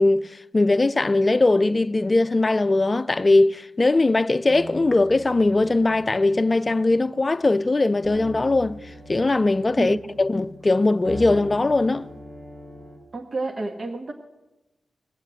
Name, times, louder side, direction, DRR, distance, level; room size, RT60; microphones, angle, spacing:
voice 1, 0.0-8.8 9.1-12.0, left 2 dB, 30° left, 0.5 m, -20 dB
sound 1, 4.0-13.0, equal, 85° right, 6.2 m, -42 dB
voice 2, 13.1-14.1, right 2 dB, 50° right, 1.4 m, -29 dB
20.5 x 7.5 x 7.7 m
wide cardioid pair, 85°, 0 cm